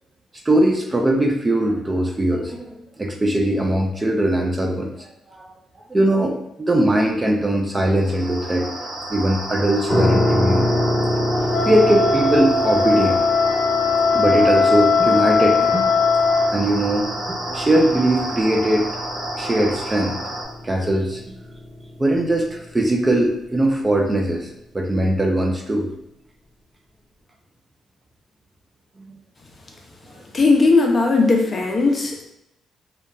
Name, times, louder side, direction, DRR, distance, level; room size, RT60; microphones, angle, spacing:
voice 1, 0.5-5.5 5.9-10.7 11.7-13.2 14.1-15.9 16.5-18.9 19.4-20.2 20.6-21.2 22.0-24.5 24.7-25.9, right 1 dB, 20° right, 1 dB, 0.4 m, -20 dB
sound 1, 7.9-20.4, right 1 dB, 80° right, 0.8 m, -30 dB
sound 2, 9.9-22.7, left 1 dB, 20° left, 1.0 m, -27 dB
Wind instrument woodwind instrument, 11.5-16.5, left 4 dB, 90° left, 0.4 m, -19 dB
voice 2, 30.3-32.2, left 3 dB, 35° left, 1 dB, 0.5 m, -17 dB
2.8 x 2.2 x 2.3 m, 0.80 s
cardioid pair, 90°, 0 cm